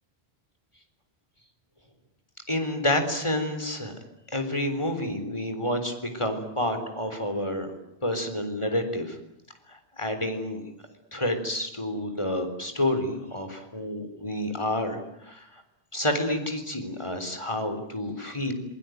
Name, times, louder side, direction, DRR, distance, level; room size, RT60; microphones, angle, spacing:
voice 1, 2.5-3.9 4.3-7.7 8.0-9.2 9.7-10.6 11.1-15.6 15.9-18.5, left 1 dB, 30° left, 7 dB, 4.0 m, -29 dB
27.0 x 22.5 x 9.3 m, 0.81 s
omnidirectional pair, 1.1 m